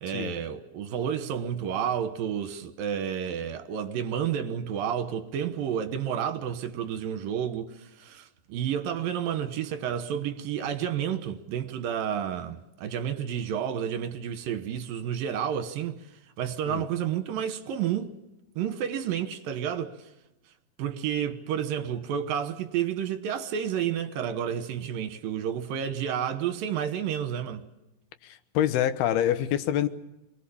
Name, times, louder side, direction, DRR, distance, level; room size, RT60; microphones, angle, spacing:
voice 1, 0.0-16.0 16.4-18.1 18.6-20.0 20.8-27.7, right 9 dB, 70° right, 2.9 m, -30 dB
voice 2, 28.2-29.9, left 11 dB, 90° left, 3.1 m, -26 dB
26.5 x 20.0 x 7.1 m
omnidirectional pair, 4.3 m